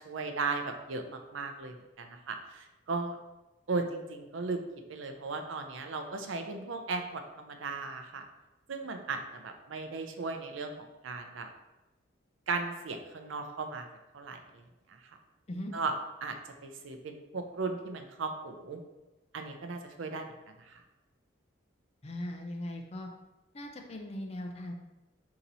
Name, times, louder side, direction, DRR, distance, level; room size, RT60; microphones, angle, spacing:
voice 1, 0.0-3.2 3.7-4.6 4.9-8.2 8.7-11.5 12.5-13.9 14.1-14.4 15.7-15.9 16.2-16.4 16.6-18.8 19.3-20.3 20.7-20.8, right 4 dB, 80° right, 6 dB, 0.5 m, -36 dB
voice 2, 22.0-23.1 23.5-24.7, left 1 dB, 30° left, 2 dB, 0.5 m, -39 dB
4.1 x 2.9 x 4.0 m, 1.0 s
head